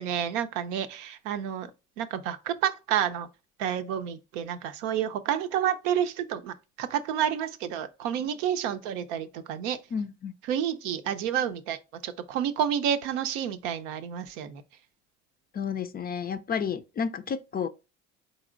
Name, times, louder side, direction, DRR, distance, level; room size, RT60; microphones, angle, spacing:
voice 1, 0.0-1.7 2.0-3.3 3.6-9.8 10.5-11.8 12.0-14.6, right 9 dB, 85° right, 0.6 m, -29 dB
voice 2, 9.9-10.3 15.5-17.7, left 6 dB, 25° left, 0.4 m, -31 dB
4.1 x 3.9 x 2.4 m
hypercardioid pair, 70°, 36 cm